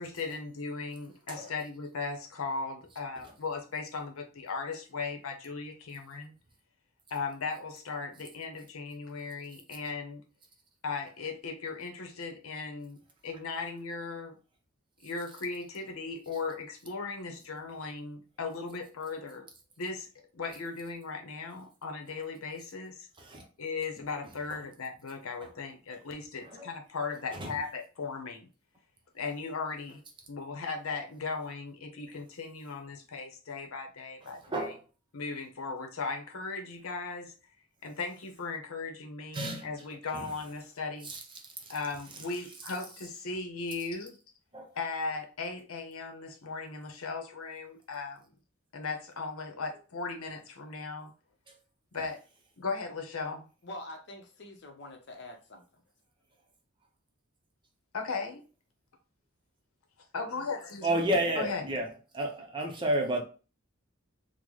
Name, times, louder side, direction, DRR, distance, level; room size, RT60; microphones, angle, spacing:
voice 1, 0.0-6.3 7.1-10.2 10.8-13.0 13.2-14.4 15.0-19.5 19.8-20.1 20.3-23.1 23.6-28.5 29.1-30.0 30.3-34.7 35.1-37.3 37.8-41.1 41.7-44.2 44.7-48.2 48.7-51.1 51.9-52.2 52.6-53.4 57.9-58.4 60.1-61.1 61.4-61.6, left 4 dB, 90° left, 0.7 m, -37 dB
voice 2, 34.2-34.8 39.3-39.7 40.1-40.3 41.0-41.7 44.5-44.7 51.5-51.6 60.8-61.9 62.1-63.2, right 1 dB, 25° right, 0.6 m, -32 dB
voice 3, 53.6-55.8, left 1 dB, 55° left, 0.7 m, -46 dB
3.8 x 2.1 x 3.1 m
head